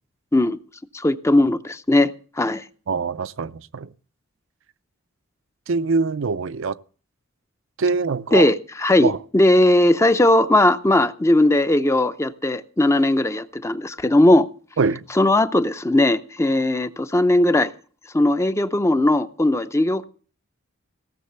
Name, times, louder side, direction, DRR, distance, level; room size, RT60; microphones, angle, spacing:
voice 1, 0.9-2.6 8.3-14.5 15.2-17.7 18.1-20.0, left 1 dB, 15° left, 0.5 m, -18 dB
voice 2, 2.9-3.9 5.7-6.8 7.8-8.5 9.0-9.2 14.8-15.0, right 4 dB, 60° right, 0.5 m, -23 dB
17.0 x 6.5 x 6.6 m
head